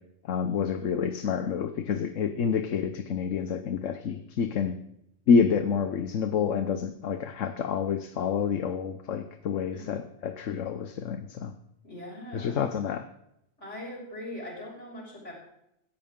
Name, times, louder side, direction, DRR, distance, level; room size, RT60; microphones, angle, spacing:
voice 1, 0.2-4.8 5.3-11.5 12.3-13.1, left 6 dB, 85° left, 9 dB, 1.2 m, -28 dB
voice 2, 11.8-12.6 13.6-15.3, left 1 dB, 70° left, -3 dB, 6.4 m, -41 dB
17.5 x 15.0 x 3.7 m, 0.80 s
omnidirectional pair, 1.3 m